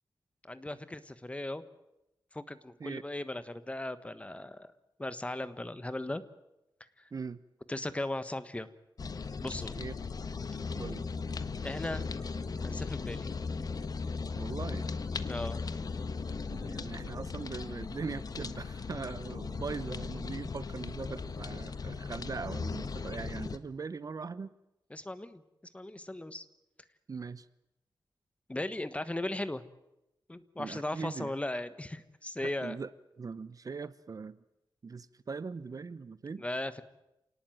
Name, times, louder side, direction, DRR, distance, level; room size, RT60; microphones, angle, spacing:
voice 1, 0.5-1.6 2.3-4.7 5.0-6.2 7.7-8.7 9.4-9.8 11.6-12.1 12.6-13.3 15.3-15.6 24.9-25.4 25.7-26.4 28.5-29.6 30.3-32.8 36.4-36.8, left 1 dB, 15° left, 13 dB, 1.3 m, -37 dB
sound 1, 9.0-23.6, left 4 dB, 50° left, 1.3 m, -37 dB
voice 2, 14.4-14.9 16.5-24.5 27.1-27.5 30.6-31.6 32.4-32.9 33.2-34.4 34.8-36.4, right 4 dB, 45° right, 16 dB, 0.8 m, -40 dB
sound 2, 16.5-19.5, right 6 dB, 85° right, 4.5 m, -58 dB
27.5 x 18.5 x 9.2 m, 0.90 s
wide cardioid pair, 125°, 8 cm